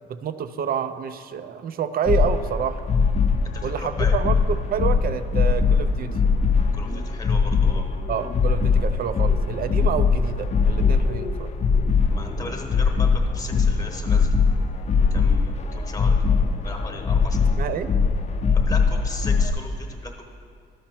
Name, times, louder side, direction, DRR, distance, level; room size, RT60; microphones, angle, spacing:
voice 1, 0.1-2.8 3.6-6.1 8.1-11.5 17.6-17.9, right 7 dB, 50° right, 12 dB, 0.4 m, -28 dB
sound 1, 2.1-19.5, left 5 dB, 35° left, 0.5 m, -21 dB
voice 2, 3.5-4.2 6.7-7.9 12.1-14.3 15.1-16.2 16.6-17.4 18.5-20.3, left 2 dB, 15° left, 2 dB, 1.0 m, -37 dB
12.5 x 5.2 x 4.4 m, 2.3 s
cardioid pair, 90°, 20 cm